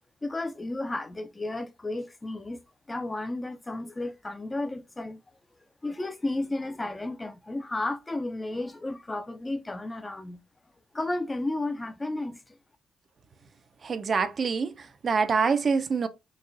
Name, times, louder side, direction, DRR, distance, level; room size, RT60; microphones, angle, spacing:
voice 1, 0.2-2.6 2.9-5.2 5.8-10.4 10.9-12.4, left 2 dB, 20° left, 0.5 m, -33 dB
voice 2, 13.8-16.1, right 5 dB, 45° right, 0.5 m, -26 dB
4.0 x 2.9 x 2.5 m
cardioid pair, 90°, 0 cm